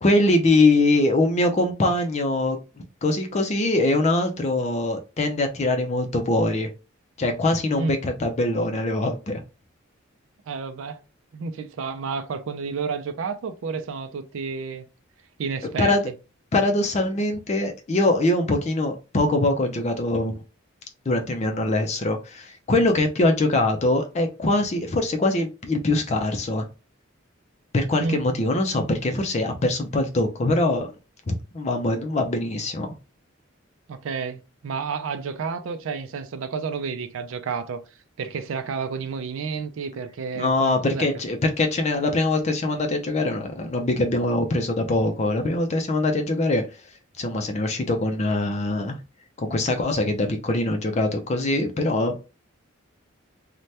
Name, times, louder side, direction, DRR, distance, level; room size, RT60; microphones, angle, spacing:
voice 1, 0.0-2.6 3.0-6.7 7.2-9.4 15.8-16.1 16.5-20.4 21.1-26.7 27.7-30.9 31.3-32.9 40.4-46.8 47.2-49.0 49.4-52.2, left 2 dB, 35° left, 0.4 m, -23 dB
voice 2, 10.5-11.0 11.3-14.8 15.4-15.9 28.0-28.2 33.9-37.8 38.2-41.1, right 5 dB, 70° right, 0.4 m, -30 dB
2.7 x 2.1 x 3.2 m
head